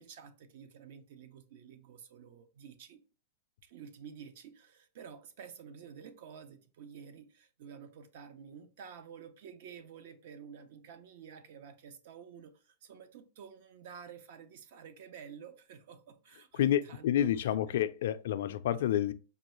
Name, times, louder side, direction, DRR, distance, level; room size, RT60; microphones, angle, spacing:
voice 1, 0.0-3.0 3.6-17.3, right 7 dB, 65° right, 0.6 m, -51 dB
voice 2, 16.5-19.1, left 11 dB, 70° left, 0.3 m, -29 dB
5.2 x 2.3 x 3.0 m
supercardioid pair, 145°, 0 cm